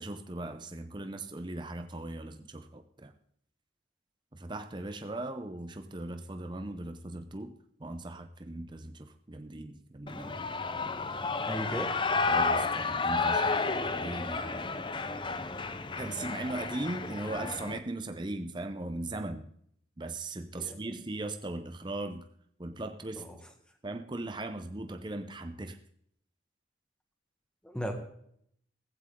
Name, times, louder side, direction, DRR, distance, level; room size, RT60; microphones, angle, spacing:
voice 1, 0.0-3.1 4.3-10.4 12.3-14.8 15.2-15.4 16.0-19.5 20.0-22.3 22.6-23.3 23.8-25.8, right 2 dB, 25° right, 7 dB, 0.7 m, -39 dB
Shout / Cheering, 10.1-17.8, left 4 dB, 25° left, 0.6 m, -31 dB
voice 2, 11.4-11.9 20.6-20.8 23.2-23.4 27.6-27.9, equal, 5° left, 4 dB, 1.6 m, -35 dB
15.5 x 15.0 x 3.7 m, 0.69 s
head